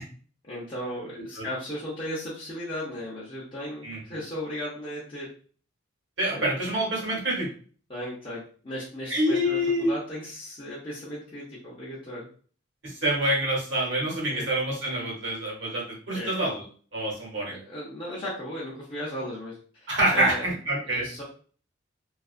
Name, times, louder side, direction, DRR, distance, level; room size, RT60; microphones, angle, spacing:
voice 1, 0.4-5.3 6.3-6.5 7.9-12.3 14.3-14.5 16.1-16.4 17.5-20.4 20.9-21.2, equal, 25° left, -8 dB, 0.6 m, -36 dB
voice 2, 6.2-7.5 9.1-9.9 12.8-16.6 16.9-17.6 19.9-21.1, right 1 dB, 65° right, -3 dB, 1.1 m, -26 dB
2.4 x 2.3 x 2.4 m, 0.43 s
head